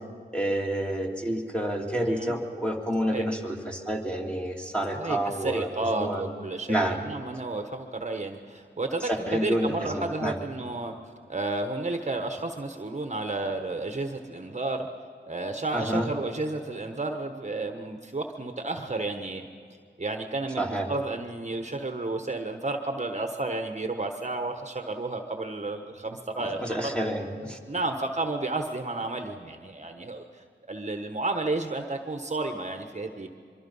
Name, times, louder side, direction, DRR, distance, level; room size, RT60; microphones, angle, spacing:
voice 1, 0.3-6.2 6.7-7.0 9.1-10.4 15.7-16.1 20.6-20.9 26.4-27.6, right 1 dB, 5° left, 0 dB, 2.6 m, -29 dB
voice 2, 4.9-11.0 11.3-14.9 15.3-19.4 20.0-26.6 27.7-33.3, right 2 dB, 35° right, 5 dB, 1.3 m, -32 dB
24.0 x 24.0 x 5.6 m, 2.2 s
wide cardioid pair, 75°, 19 cm